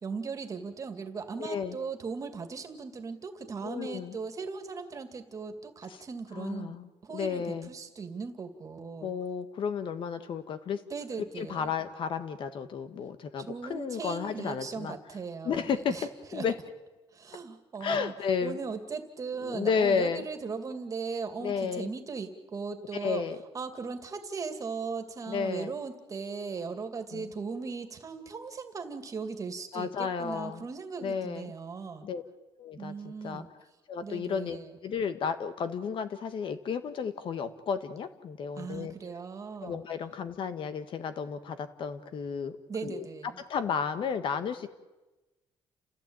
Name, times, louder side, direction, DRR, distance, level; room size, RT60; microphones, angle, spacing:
voice 1, 0.0-6.8 7.0-9.1 10.9-11.7 13.4-16.5 17.1-18.1 18.4-23.2 23.5-32.1 32.8-33.5 34.0-34.7 38.6-39.8 42.7-43.4, right 5 dB, 35° right, 7 dB, 2.3 m, -38 dB
voice 2, 1.4-1.8 3.6-4.1 6.3-6.8 7.1-7.7 9.0-10.8 11.4-15.0 15.4-16.5 17.8-18.6 19.4-20.2 21.4-21.9 23.0-23.4 25.3-25.7 27.1-27.3 29.7-30.6 31.0-31.5 32.0-32.2 32.6-33.4 33.9-34.6 34.8-38.9 39.6-42.5 42.8-43.0 43.5-44.7, left 6 dB, 55° left, 10 dB, 1.6 m, -32 dB
29.5 x 15.5 x 8.9 m, 1.1 s
cardioid pair, 140°, 10 cm